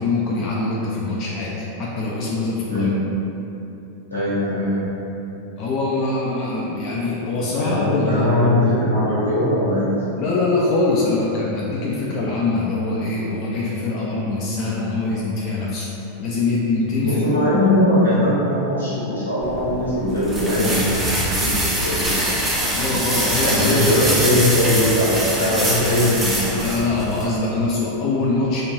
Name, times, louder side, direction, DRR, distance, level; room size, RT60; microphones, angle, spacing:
voice 1, 0.0-2.9 5.6-8.5 10.2-15.9 16.2-17.3 22.7-24.0 25.5-26.0 26.6-28.6, left 3 dB, 35° left, -5 dB, 0.3 m, -23 dB
voice 2, 2.7-3.0 4.1-4.8 7.6-10.0 17.0-22.9 23.2-26.5, left 1 dB, 85° left, -11 dB, 1.2 m, -20 dB
sound 1, 19.4-27.3, right 1 dB, 20° right, 0.5 m, -23 dB
3.1 x 2.4 x 2.6 m, 3.0 s
figure-of-eight pair, 90°, 0 cm